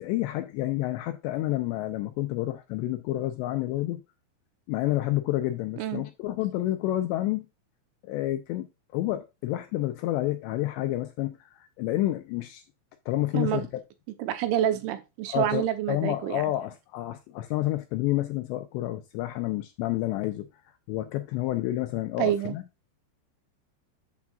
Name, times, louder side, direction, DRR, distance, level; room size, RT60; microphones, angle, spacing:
voice 1, 0.0-4.0 4.7-7.5 8.0-8.7 8.9-12.6 13.1-13.7 15.3-20.5 20.9-22.6, left 15 dB, 85° left, 2.5 m, -29 dB
voice 2, 13.3-13.7 14.2-16.4 22.2-22.5, right 11 dB, 85° right, 3.2 m, -27 dB
8.4 x 7.2 x 2.4 m
omnidirectional pair, 5.6 m